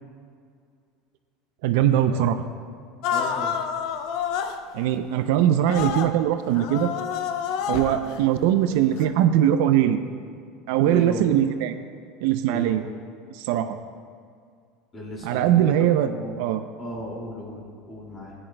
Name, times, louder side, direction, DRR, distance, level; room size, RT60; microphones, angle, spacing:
voice 1, 1.6-2.4 4.7-6.9 7.7-10.0 10.7-11.7 12.2-12.8 13.3-13.8 15.2-16.1 16.4-16.6, right 11 dB, 70° right, 9 dB, 0.4 m, -21 dB
sound 1, 3.0-4.6 5.7-6.1 6.5-8.2 8.9-9.1, left 7 dB, 60° left, 0.5 m, -28 dB
voice 2, 3.1-3.6 7.7-7.9 10.8-11.3 12.5-12.9 14.9-18.3, equal, 20° left, -2 dB, 2.3 m, -35 dB
13.5 x 10.0 x 2.2 m, 2.2 s
supercardioid pair, 145°, 0 cm